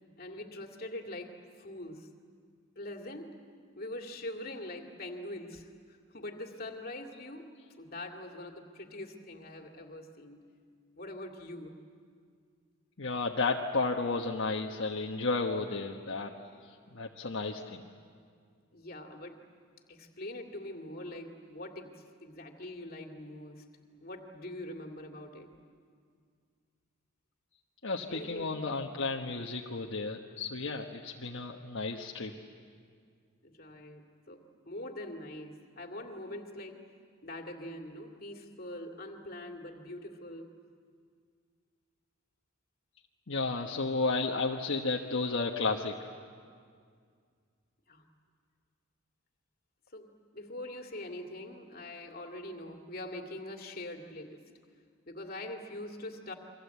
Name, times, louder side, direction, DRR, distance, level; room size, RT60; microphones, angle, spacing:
voice 1, 0.2-2.1 2.8-3.5 3.7-10.5 10.9-11.8 18.7-19.4 19.9-25.5 28.1-28.6 33.4-36.8 37.2-40.5 47.9-48.1 49.9-54.5 55.1-56.3, left 1 dB, 45° left, 3 dB, 2.4 m, -43 dB
voice 2, 13.0-16.3 16.9-17.9 27.8-32.3 43.3-46.1, left 3 dB, 60° left, 0 dB, 1.3 m, -32 dB
29.5 x 24.0 x 8.3 m, 2.1 s
head